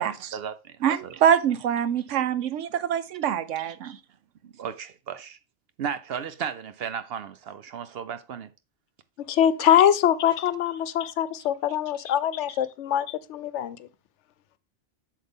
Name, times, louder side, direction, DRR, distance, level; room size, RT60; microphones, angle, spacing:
voice 1, 0.0-1.2 3.6-4.0 4.4-5.4 5.8-8.5 9.6-9.7, right 7 dB, 65° right, 0.7 m, -35 dB
voice 2, 0.8-4.0, right 9 dB, 85° right, 1.0 m, -24 dB
voice 3, 9.3-13.9, left 10 dB, 80° left, 0.9 m, -23 dB
7.9 x 6.4 x 3.5 m
omnidirectional pair, 1.2 m